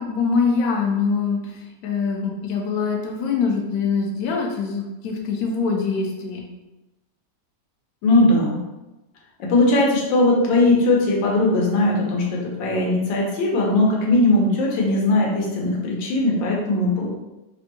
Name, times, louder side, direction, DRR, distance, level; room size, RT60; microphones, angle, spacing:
voice 1, 0.0-6.4, left 5 dB, 70° left, 1 dB, 0.9 m, -24 dB
voice 2, 8.0-8.6 9.4-17.1, left 2 dB, 90° left, -2 dB, 1.5 m, -19 dB
3.3 x 2.1 x 2.9 m, 1.0 s
omnidirectional pair, 2.0 m